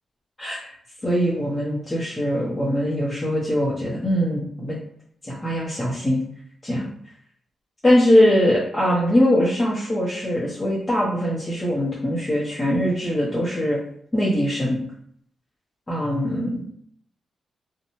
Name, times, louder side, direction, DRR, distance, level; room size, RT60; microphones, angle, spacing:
voice 1, 1.0-4.8 5.3-6.2 6.6-6.9 7.8-13.8 14.1-14.8 15.9-16.6, equal, 20° left, -6 dB, 0.8 m, -22 dB
2.7 x 2.2 x 3.0 m, 0.64 s
cardioid pair, 65°, 0 cm